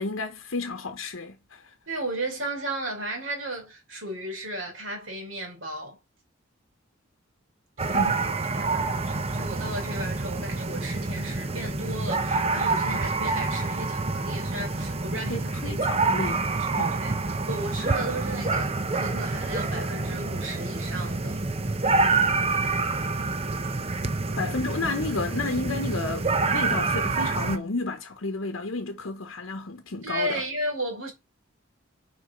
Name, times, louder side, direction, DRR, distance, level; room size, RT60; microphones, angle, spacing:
voice 1, 0.0-1.7 7.9-8.2 15.3-16.4 16.8-17.0 24.4-30.4, left 3 dB, 75° left, 1.0 m, -31 dB
voice 2, 1.9-6.0 7.8-8.1 8.5-16.1 16.7-17.1 17.5-21.4 30.0-31.1, right 1 dB, 65° right, 3.6 m, -34 dB
sound 1, 7.8-27.6, right 3 dB, 30° right, 0.7 m, -27 dB
6.5 x 4.8 x 5.2 m
head